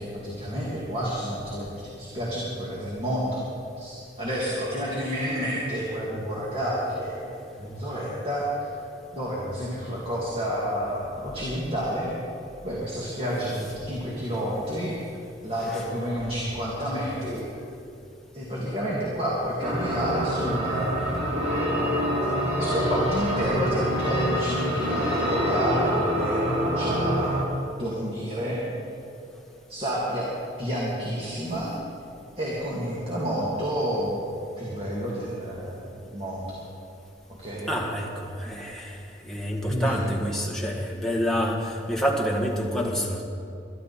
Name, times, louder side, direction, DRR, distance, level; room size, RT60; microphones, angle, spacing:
voice 1, 0.0-3.4 3.8-8.7 9.1-12.1 12.6-14.9 15.4-17.4 18.3-27.3 27.8-28.6 29.7-30.3 30.6-31.7 32.4-34.2 34.6-36.6 37.4-37.8 39.7-40.1, equal, 30° right, -6 dB, 2.3 m, -30 dB
sound 1, 19.6-27.4, equal, 75° right, 3.9 m, -26 dB
voice 2, 37.7-43.2, equal, ahead, -2 dB, 1.7 m, -28 dB
22.5 x 12.5 x 4.3 m, 2.6 s
head